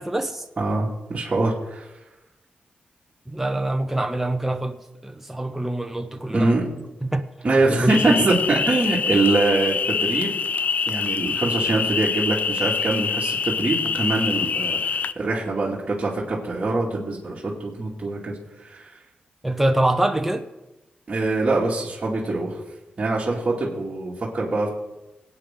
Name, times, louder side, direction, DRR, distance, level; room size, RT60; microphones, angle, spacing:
voice 1, 0.0-0.4 3.3-6.6 7.0-7.2 7.7-8.3 19.4-20.5, right 1 dB, 10° right, 0.7 m, -25 dB
voice 2, 0.6-1.9 6.3-6.6 7.4-10.4 10.9-18.9 21.1-22.6 23.0-24.7, right 2 dB, 35° right, 2.4 m, -24 dB
sound 1, 7.9-15.1, left 6 dB, 55° left, 0.5 m, -25 dB
23.0 x 8.6 x 3.8 m
wide cardioid pair, 135°, 3 cm